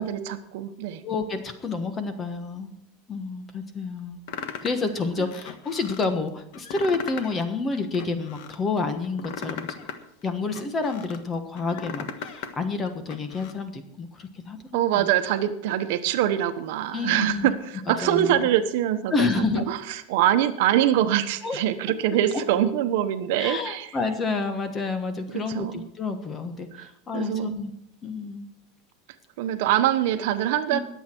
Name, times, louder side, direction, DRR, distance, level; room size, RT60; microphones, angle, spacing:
voice 1, 0.0-1.0 5.2-5.3 14.7-23.9 25.3-25.8 26.7-27.6 29.4-30.8, right 11 dB, 65° right, 9 dB, 1.1 m, -24 dB
voice 2, 1.0-2.7 3.1-4.2 4.6-9.8 10.2-14.6 14.9-15.1 16.9-17.5 18.0-18.5 19.1-19.6 21.4-21.6 22.3-22.4 23.4-27.7 28.0-28.5 30.7-30.8, left 4 dB, 20° left, 8 dB, 1.3 m, -29 dB
sound 1, 4.3-4.9 5.3-6.1 6.5-7.4 7.7-8.6 9.0-11.2 11.6-12.5 12.8-13.5, left 7 dB, 60° left, 1.4 m, -37 dB
21.5 x 8.2 x 4.6 m, 0.76 s
supercardioid pair, 160°, 0 cm